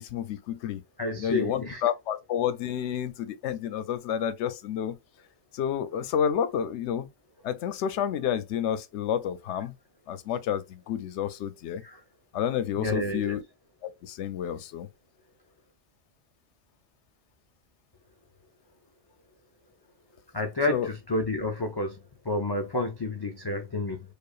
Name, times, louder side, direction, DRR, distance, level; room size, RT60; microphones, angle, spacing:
voice 1, 0.0-0.8 1.2-5.0 5.5-7.1 7.4-9.7 10.1-11.8 12.3-13.4 13.8-14.9 20.7-20.9, left 9 dB, 85° left, 0.9 m, -30 dB
voice 2, 1.0-1.8 11.8-12.0 12.8-13.4 20.3-24.0, left 2 dB, 40° left, 0.3 m, -30 dB
4.9 x 2.3 x 2.4 m
omnidirectional pair, 1.1 m